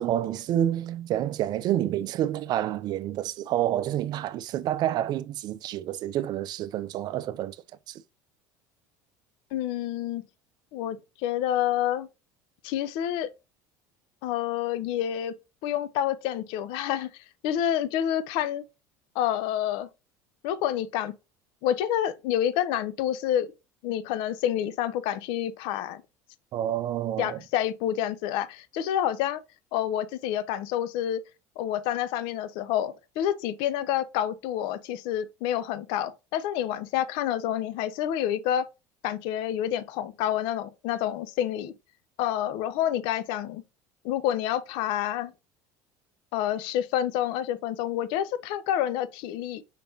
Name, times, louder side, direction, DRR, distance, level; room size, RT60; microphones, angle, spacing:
voice 1, 0.0-7.6 7.9-8.0 26.5-27.4, right 12 dB, 50° right, 0.4 m, -28 dB
voice 2, 9.5-10.2 10.7-12.1 12.6-13.3 14.2-15.3 15.6-18.6 19.2-19.9 20.4-21.1 21.6-23.5 23.8-26.0 27.2-29.4 29.7-31.2 31.6-38.7 39.0-41.7 42.2-43.6 44.0-45.3 46.3-49.6, left 11 dB, 65° left, 0.5 m, -28 dB
4.9 x 3.4 x 2.7 m
hypercardioid pair, 80°, 9 cm